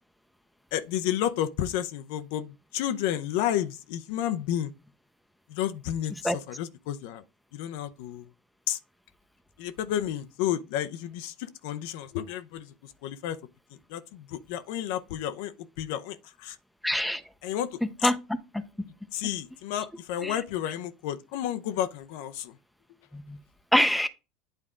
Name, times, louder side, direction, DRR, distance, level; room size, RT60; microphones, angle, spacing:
voice 1, 0.7-4.7 5.5-7.2 7.5-8.3 8.7-8.8 9.6-12.7 13.0-13.4 13.9-15.5 15.8-16.6 17.4-18.1 19.1-22.5, left 11 dB, 70° left, 0.6 m, -31 dB
voice 2, 16.8-17.2 18.0-18.2 18.5-18.6 20.2-20.4 23.1-23.4 23.7-24.1, left 1 dB, ahead, 0.7 m, -24 dB
8.9 x 3.6 x 3.7 m
supercardioid pair, 105°, 0 cm